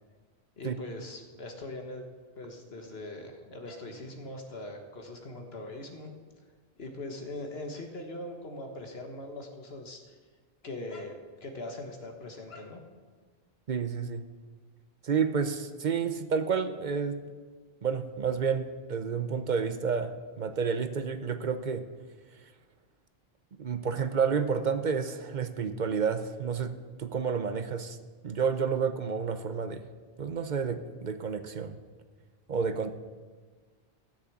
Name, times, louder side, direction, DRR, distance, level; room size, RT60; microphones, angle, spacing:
voice 1, 0.6-2.0 2.4-6.1 6.8-10.2 10.6-11.1 11.4-12.8, left 2 dB, 75° left, 4 dB, 1.6 m, -41 dB
voice 2, 13.7-14.2 15.0-17.2 17.8-21.9 23.6-28.0 28.2-29.9 30.2-31.8 32.5-32.9, right 6 dB, 50° right, 10 dB, 0.8 m, -30 dB
14.0 x 6.5 x 8.6 m, 1.4 s
omnidirectional pair, 1.1 m